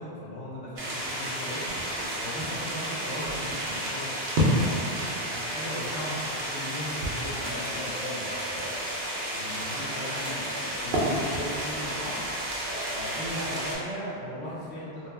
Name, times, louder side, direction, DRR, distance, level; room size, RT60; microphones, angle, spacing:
voice 1, 0.0-1.8 2.2-4.1 4.9-8.6 9.3-12.2 12.9-15.1, left 1 dB, 65° left, -8 dB, 1.0 m, -38 dB
sound 1, 0.8-14.0, equal, 40° left, 0.5 m, -44 dB
sound 2, 0.8-13.7, equal, 75° right, 0.8 m, -31 dB
2.3 x 2.1 x 3.3 m, 2.6 s
omnidirectional pair, 1.1 m